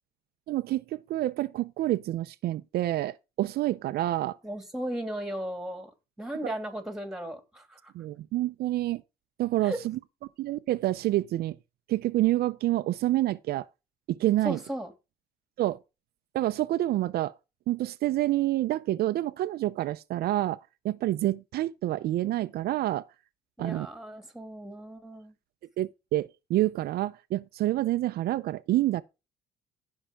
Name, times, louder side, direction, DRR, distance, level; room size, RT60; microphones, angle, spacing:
voice 1, 0.5-4.4 6.4-6.5 7.9-9.0 9.4-10.0 10.4-11.6 11.9-13.7 14.1-14.6 15.6-15.8 16.3-17.3 17.7-20.6 20.8-23.1 23.6-23.9 25.8-29.0, right 15 dB, 65° right, 0.6 m, -28 dB
voice 2, 4.4-5.9 6.2-7.9 9.6-9.8 14.4-14.9 23.6-25.3, right 1 dB, 5° right, 2.6 m, -36 dB
15.5 x 5.6 x 3.6 m
cardioid pair, 110°, 17 cm